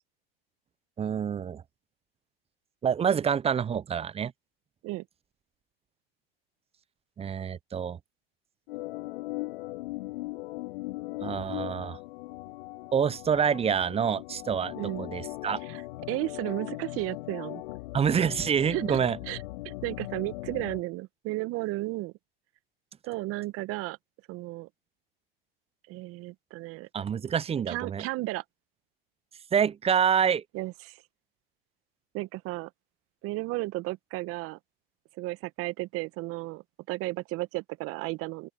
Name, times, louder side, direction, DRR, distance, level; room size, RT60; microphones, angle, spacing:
voice 1, 1.0-1.6 2.8-4.3 7.2-8.0 11.2-12.0 12.9-15.6 17.9-19.2 26.9-28.0 29.5-30.4, right 7 dB, 20° right, 0.7 m, -27 dB
Organ, 8.7-20.8, left 19 dB, 65° left, 2.7 m, -39 dB
voice 2, 14.7-15.1 15.6-15.8 16.1-17.6 18.7-19.0 19.3-19.4 19.6-22.1 23.0-24.0 24.3-24.7 25.9-26.9 27.7-28.4 30.5-31.0 32.1-32.7 33.2-34.6 35.2-38.5, right 20 dB, 50° right, 1.4 m, -34 dB
open air
hypercardioid pair, 90°, 30 cm